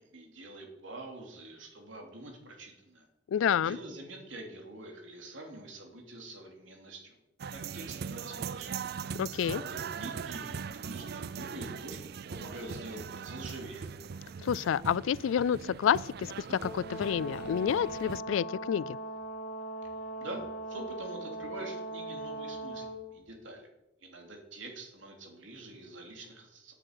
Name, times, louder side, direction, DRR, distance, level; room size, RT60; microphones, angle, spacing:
voice 1, 0.0-3.0 3.6-7.2 7.5-8.7 9.5-12.0 12.3-13.9 20.2-20.4 20.7-23.7 24.0-26.7, right 2 dB, 80° right, 2.9 m, -45 dB
voice 2, 3.3-3.8 9.1-9.6 14.4-19.0, left 8 dB, 85° left, 0.3 m, -29 dB
sound 1, 7.4-18.2, right 6 dB, 55° right, 0.4 m, -40 dB
Brass instrument, 16.6-23.0, right 2 dB, 45° left, 2.5 m, -40 dB
9.1 x 7.6 x 8.0 m
head